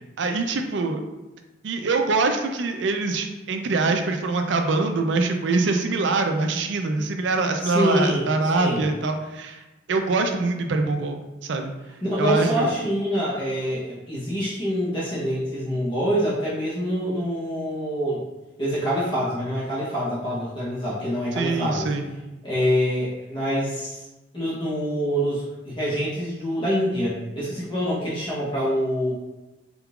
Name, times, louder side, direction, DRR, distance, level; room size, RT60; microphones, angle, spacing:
voice 1, 0.2-1.0 1.6-9.6 9.9-11.2 11.5-11.7 12.2-12.7 21.4-22.1, right 3 dB, 65° right, 5 dB, 0.4 m, -24 dB
voice 2, 7.6-8.9 12.0-18.2 18.6-21.9 22.4-24.1 24.3-29.1, equal, 25° left, -8 dB, 0.9 m, -26 dB
3.8 x 3.7 x 2.3 m, 1.1 s
head